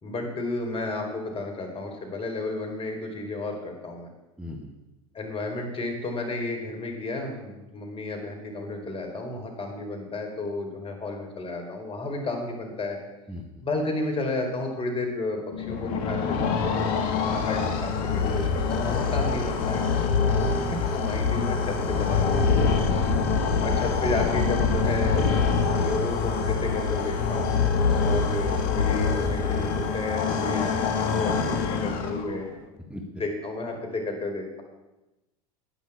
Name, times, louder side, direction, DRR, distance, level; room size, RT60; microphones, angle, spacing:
voice 1, 0.0-4.1 5.1-13.0 13.6-16.6 17.2-19.9 20.7-22.5 23.6-25.3 25.7-27.6 28.0-32.5 33.2-34.6, left 2 dB, 30° left, 3 dB, 4.4 m, -32 dB
voice 2, 4.4-4.7 13.3-13.4 20.4-20.7 27.8-28.1 32.9-33.0, left 1 dB, 5° right, 2 dB, 1.7 m, -38 dB
sound 1, 15.5-32.5, left 5 dB, 60° left, 1.9 m, -25 dB
11.0 x 10.5 x 8.6 m, 1.0 s
hypercardioid pair, 85°, 19 cm